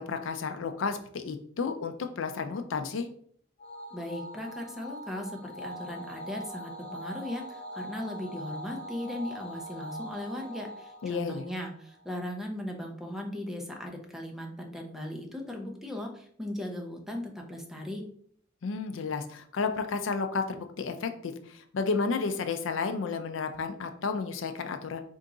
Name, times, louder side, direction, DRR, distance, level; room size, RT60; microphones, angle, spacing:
voice 1, 0.0-3.1 11.0-11.4 18.6-25.0, left 4 dB, 70° left, 8 dB, 0.4 m, -32 dB
sound 1, 3.6-12.2, equal, 35° left, 1.1 m, -42 dB
voice 2, 3.9-18.0, left 1 dB, ahead, 1 dB, 0.6 m, -38 dB
4.5 x 2.5 x 3.7 m, 0.62 s
head